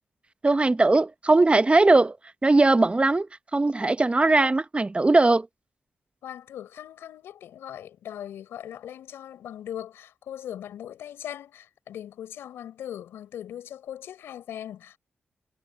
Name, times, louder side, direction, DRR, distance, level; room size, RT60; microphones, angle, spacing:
voice 1, 0.4-2.2 2.4-3.3 3.5-5.5, right 2 dB, 30° right, 0.9 m, -19 dB
voice 2, 6.2-15.0, left 10 dB, 85° left, 6.9 m, -39 dB
supercardioid pair, 40°, 4 cm